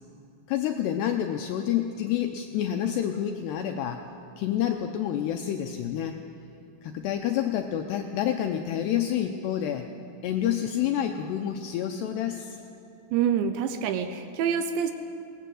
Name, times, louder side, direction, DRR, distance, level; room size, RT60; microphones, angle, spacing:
voice 1, 0.5-4.0 4.4-6.2 6.8-9.9 10.2-12.6, left 10 dB, 80° left, 5 dB, 2.4 m, -28 dB
voice 2, 13.1-14.9, right 8 dB, 75° right, 8 dB, 2.8 m, -26 dB
21.0 x 18.5 x 7.7 m, 2.6 s
omnidirectional pair, 5.7 m